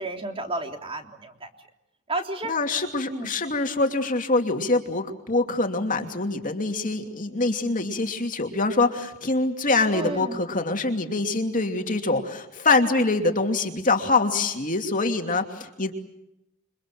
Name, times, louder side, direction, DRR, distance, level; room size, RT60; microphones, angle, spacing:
voice 1, 0.0-1.5 2.1-2.5 3.1-3.3 9.9-10.4, right 2 dB, 25° right, 4 dB, 3.3 m, -31 dB
voice 2, 2.4-15.9, left 3 dB, 35° left, 4 dB, 2.8 m, -24 dB
29.0 x 24.5 x 7.7 m, 0.87 s
head